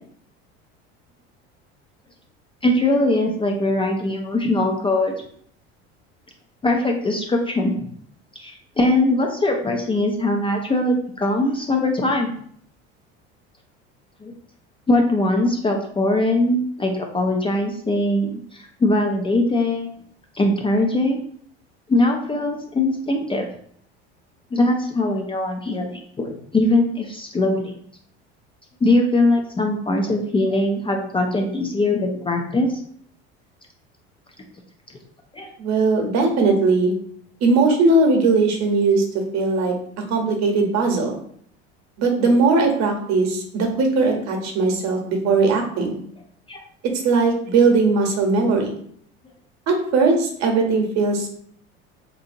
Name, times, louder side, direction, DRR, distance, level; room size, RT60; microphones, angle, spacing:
voice 1, 2.6-5.1 6.6-7.9 8.4-12.3 14.2-14.3 14.9-19.9 20.3-21.2 21.9-23.5 24.5-27.8 28.8-32.8 35.3-35.5 46.5-46.6, left 2 dB, 15° left, 2 dB, 0.4 m, -21 dB
voice 2, 35.6-36.9 37.4-39.0 39.3-39.7 40.1-41.2 42.0-46.0 47.0-48.8 49.7-51.3, right 3 dB, 55° right, 3 dB, 0.9 m, -19 dB
2.7 x 2.6 x 2.6 m, 0.62 s
hypercardioid pair, 80°, 33 cm